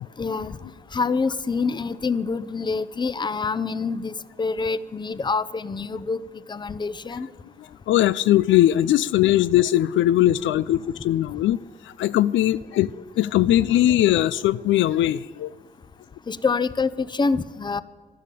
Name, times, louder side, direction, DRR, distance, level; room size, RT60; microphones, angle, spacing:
voice 1, 0.2-0.6 0.9-4.1 4.4-6.2 6.5-7.3 16.3-17.8, left 4 dB, 20° left, 16 dB, 0.6 m, -26 dB
voice 2, 7.9-11.6 12.0-15.5, left 13 dB, 70° left, 17 dB, 0.4 m, -20 dB
13.0 x 12.0 x 8.3 m, 1.4 s
cardioid pair, 90°, 20 cm